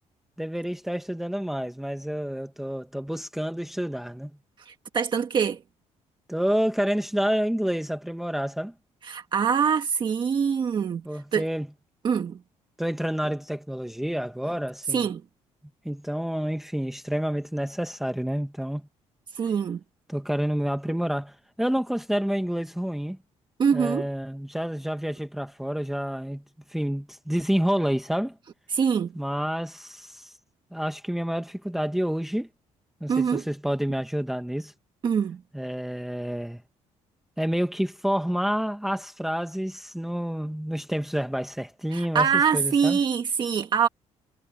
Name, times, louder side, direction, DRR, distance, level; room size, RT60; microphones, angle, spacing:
voice 1, 0.4-4.3 6.3-8.7 11.0-11.7 12.8-15.1 15.8-18.9 20.1-23.2 23.7-26.4 26.7-28.3 29.1-30.3 30.7-32.5 33.0-34.7 35.5-36.6 37.4-42.3 42.5-43.0, equal, ahead, 1.3 m, -28 dB
voice 2, 4.6-5.6 9.0-11.0 11.3-11.4 12.0-12.4 14.9-15.2 19.3-19.8 23.6-24.1 28.7-29.1 33.1-33.4 35.0-35.4 41.9-43.9, right 6 dB, 40° right, 1.6 m, -24 dB
cardioid pair, 135°, 12 cm